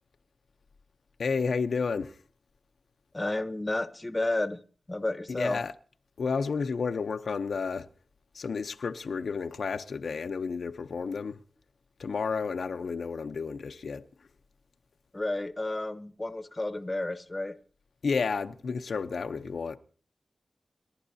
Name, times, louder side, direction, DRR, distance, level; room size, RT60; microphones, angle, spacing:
voice 1, 1.2-2.2 5.3-5.7 6.2-7.9 8.3-11.4 12.0-14.1 18.0-19.8, left 5 dB, 90° left, 0.7 m, -31 dB
voice 2, 3.1-4.6 4.9-5.6 15.1-17.6, left 2 dB, 20° left, 0.9 m, -31 dB
29.0 x 11.5 x 2.7 m
wide cardioid pair, 115°, 0 cm